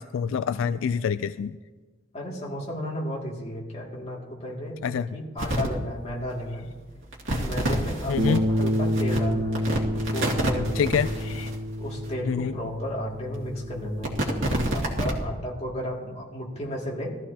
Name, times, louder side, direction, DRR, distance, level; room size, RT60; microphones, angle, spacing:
voice 1, 0.0-1.6 4.8-5.1 8.1-8.4 10.8-11.5 12.3-12.5, left 7 dB, 80° left, 13 dB, 0.3 m, -26 dB
voice 2, 2.1-6.7 7.4-11.2 11.8-17.2, equal, 30° left, -3 dB, 2.4 m, -34 dB
sound 1, 5.4-5.7 6.3-6.4 7.0-12.1 12.7-12.8 13.3-15.2, right 1 dB, 85° right, 2.1 m, -29 dB
Bass guitar, 8.2-14.4, equal, 55° right, 1.4 m, -29 dB
19.0 x 13.5 x 2.9 m, 1.4 s
head